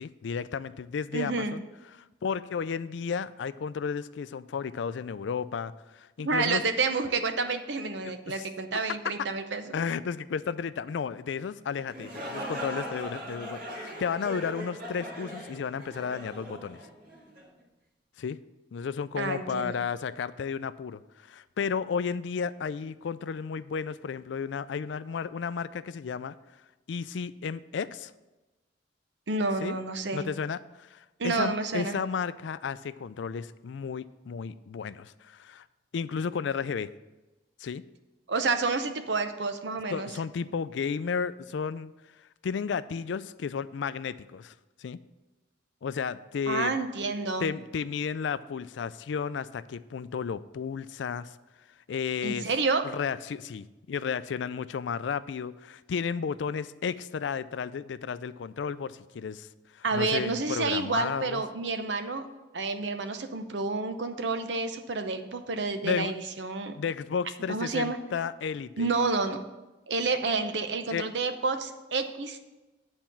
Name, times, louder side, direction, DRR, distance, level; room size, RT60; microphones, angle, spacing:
voice 1, 0.0-1.6 1.9-6.6 8.0-8.5 9.7-16.8 18.2-18.4 18.7-26.3 26.9-28.1 29.6-29.8 30.1-35.6 35.9-36.9 37.6-37.8 39.9-41.9 42.4-45.0 45.8-46.7 47.4-51.4 51.9-52.5 52.9-59.5 59.7-61.4 65.8-66.1 66.7-68.9 70.9-71.0, left 6 dB, 75° left, 15 dB, 0.4 m, -33 dB
voice 2, 1.1-1.5 6.2-9.7 19.2-19.8 29.3-30.3 31.2-32.0 38.3-40.1 46.5-47.5 52.2-52.8 59.8-62.2 62.5-66.7 67.5-68.0 68.8-69.4 69.9-72.4, right 3 dB, 70° right, 8 dB, 0.8 m, -29 dB
sound 1, 11.8-17.5, equal, 50° right, 1.9 m, -39 dB
9.2 x 4.3 x 7.3 m, 1.1 s
head